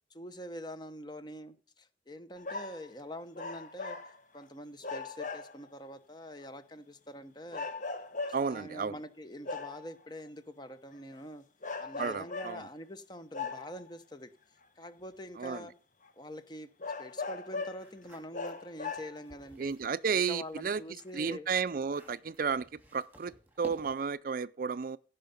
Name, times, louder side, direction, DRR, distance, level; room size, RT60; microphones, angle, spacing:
voice 1, 0.0-7.7 8.5-11.4 11.8-14.3 14.8-15.7 16.2-16.7 17.0-19.7 20.1-21.5, equal, 25° left, 1.0 m, -45 dB
sound 1, 2.4-2.9 3.3-4.4 4.8-5.7 6.4-6.5 7.5-8.6 9.4-9.9 10.9-11.2 11.6-12.7 13.3-13.9 14.8-14.9 15.6-15.7 16.0-16.1 16.8-17.9 18.3-19.3 20.1-20.2, left 4 dB, 45° left, 1.1 m, -39 dB
voice 2, 8.3-8.9 12.0-12.7 15.4-15.7 19.6-20.8 21.1-25.0, right 5 dB, 50° right, 0.4 m, -33 dB
sound 2, 17.7-20.0 20.4-24.2, right 1 dB, 10° right, 3.0 m, -54 dB
16.0 x 5.7 x 5.3 m
head